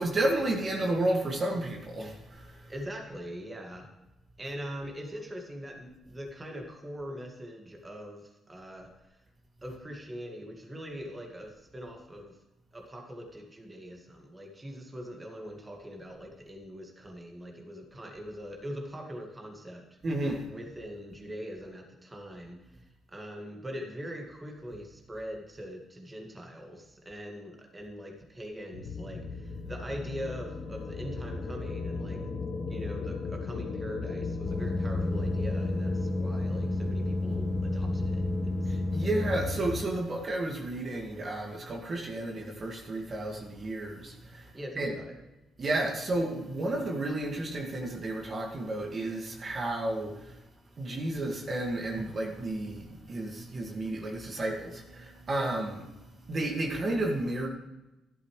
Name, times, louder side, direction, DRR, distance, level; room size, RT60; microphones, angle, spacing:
voice 1, 0.0-2.7 20.0-20.5 38.7-44.5 44.8-44.9 45.6-50.4 50.8-55.9 56.3-57.5, right 1 dB, 40° right, 1 dB, 2.1 m, -32 dB
voice 2, 2.7-3.9 4.4-9.2 9.6-12.4 12.7-19.9 20.5-32.2 32.7-38.7 44.5-45.1, equal, 20° right, 1 dB, 2.1 m, -42 dB
sound 1, 28.7-39.8, left 4 dB, 65° left, 1.2 m, -36 dB
sound 2, 34.5-39.4, left 1 dB, 10° left, 1.5 m, -31 dB
13.5 x 11.5 x 3.3 m, 1.0 s
cardioid pair, 90°, 0 cm